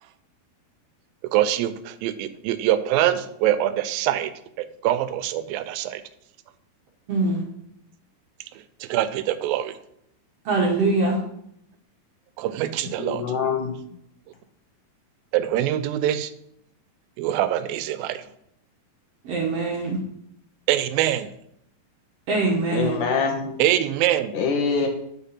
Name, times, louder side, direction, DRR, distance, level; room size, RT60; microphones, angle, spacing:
voice 1, 1.3-4.3 4.6-6.0 8.8-9.8 12.4-13.2 15.3-16.3 17.2-18.2 20.7-21.3 23.6-24.4, right 12 dB, 85° right, 12 dB, 2.3 m, -24 dB
voice 2, 7.1-7.4 10.5-11.2 19.3-20.0 22.3-23.0, right 3 dB, 65° right, -1 dB, 1.6 m, -23 dB
voice 3, 13.0-13.8 22.7-23.6 24.3-24.9, left 5 dB, 70° left, 4 dB, 2.3 m, -24 dB
7.2 x 5.7 x 5.6 m, 0.74 s
omnidirectional pair, 4.1 m